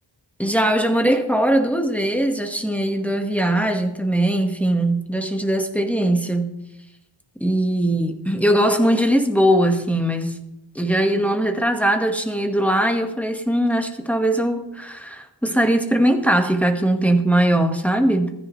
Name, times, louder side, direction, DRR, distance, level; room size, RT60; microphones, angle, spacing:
voice 1, 0.4-6.5 7.4-10.4 10.7-18.3, right 1 dB, 5° left, 4 dB, 1.4 m, -20 dB
17.0 x 14.5 x 3.2 m, 0.87 s
wide cardioid pair, 45°, 47 cm